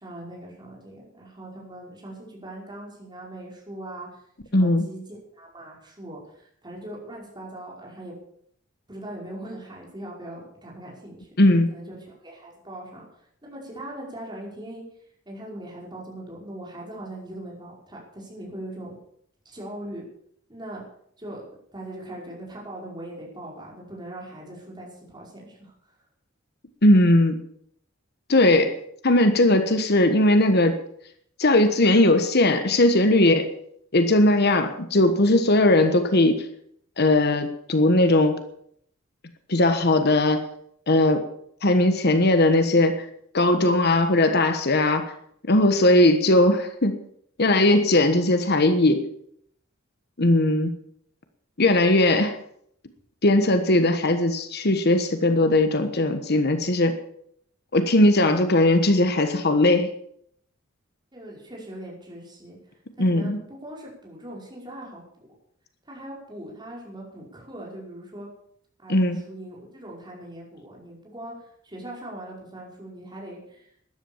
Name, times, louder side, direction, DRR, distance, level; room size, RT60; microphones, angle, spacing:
voice 1, 0.0-4.2 4.5-8.1 8.9-11.3 11.7-14.8 15.3-19.0 19.5-20.0 20.5-20.8 21.2-21.4 21.7-25.9 61.1-65.0 65.9-68.3 68.8-73.7, right 1 dB, 20° right, -3 dB, 5.4 m, -40 dB
voice 2, 4.5-4.9 11.4-11.7 26.8-27.4 28.3-28.8 29.0-30.8 31.4-33.5 33.9-36.4 37.0-38.4 39.5-40.5 40.9-41.2 41.6-43.1 43.3-45.1 45.5-47.0 47.4-49.1 50.2-50.7 51.6-52.4 53.2-57.0 57.7-59.9 63.0-63.4 68.9-69.2, left 1 dB, 50° left, 8 dB, 1.3 m, -19 dB
13.0 x 11.0 x 7.2 m, 0.68 s
head